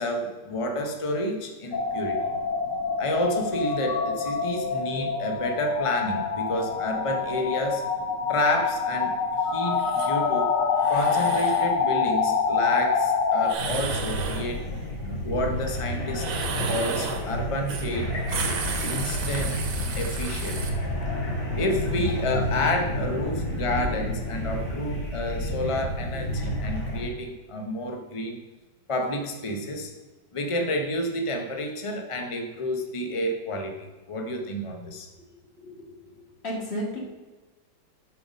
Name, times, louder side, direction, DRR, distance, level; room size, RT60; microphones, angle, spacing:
voice 1, 0.0-2.3 3.0-7.8 8.3-9.2 9.5-10.5 10.9-14.7 15.2-16.3 16.7-18.1 18.8-19.6 20.0-20.6 21.6-28.4 28.9-29.9 30.3-35.1, left 1 dB, 55° left, 3 dB, 0.3 m, -29 dB
sound 1, 1.7-13.5, left 5 dB, 70° left, 1.5 m, -26 dB
sound 2, 9.8-10.1 10.8-11.7 13.4-14.5 16.1-17.3 17.7-17.9 18.2-20.7, right 5 dB, 85° right, 1.8 m, -33 dB
sound 3, 13.6-27.0, left 1 dB, 90° left, 2.8 m, -30 dB
voice 2, 35.6-36.1 36.4-37.0, equal, 35° left, -2 dB, 2.1 m, -33 dB
7.6 x 5.8 x 5.1 m, 1.3 s
omnidirectional pair, 2.1 m